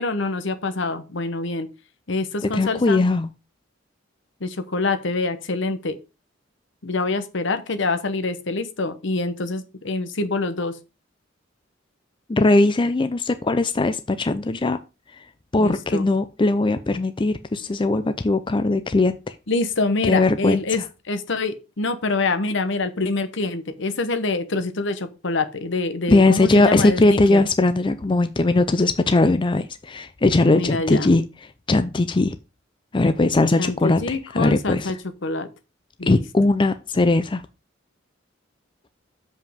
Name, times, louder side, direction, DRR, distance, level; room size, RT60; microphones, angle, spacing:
voice 1, 0.0-1.7 2.1-3.0 4.4-6.0 6.8-10.8 15.6-16.1 19.5-20.8 21.1-27.4 30.5-31.1 33.6-35.0 35.2-35.5 36.0-36.2, left 3 dB, 65° left, 10 dB, 1.0 m, -25 dB
voice 2, 2.5-3.3 12.3-14.8 15.5-19.3 20.0-20.6 26.1-31.2 31.7-32.4 32.9-34.9 36.1-37.4, left 2 dB, 25° left, 11 dB, 0.5 m, -19 dB
7.3 x 5.4 x 5.1 m, 0.29 s
head